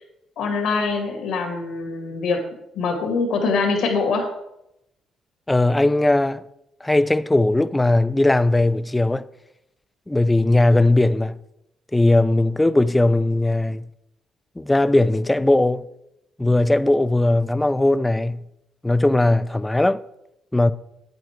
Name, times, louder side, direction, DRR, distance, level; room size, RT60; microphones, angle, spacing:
voice 1, 0.4-2.4 2.7-4.3, left 4 dB, 80° left, 2.3 m, -23 dB
voice 2, 5.5-6.4 6.8-9.3 10.1-11.4 11.9-13.9 14.6-15.8 16.4-18.4 18.8-20.0 20.5-20.7, left 2 dB, 10° left, 0.4 m, -18 dB
9.1 x 7.9 x 4.5 m
cardioid pair, 90°, 0 cm